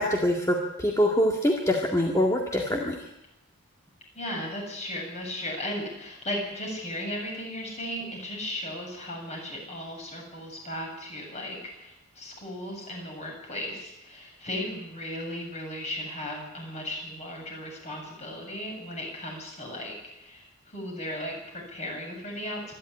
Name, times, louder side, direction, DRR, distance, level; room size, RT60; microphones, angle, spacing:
voice 1, 0.0-3.0, equal, 15° left, 1 dB, 2.0 m, -24 dB
voice 2, 4.1-22.7, left 1 dB, 35° left, 1 dB, 7.8 m, -36 dB
25.5 x 11.5 x 10.0 m, 0.91 s
head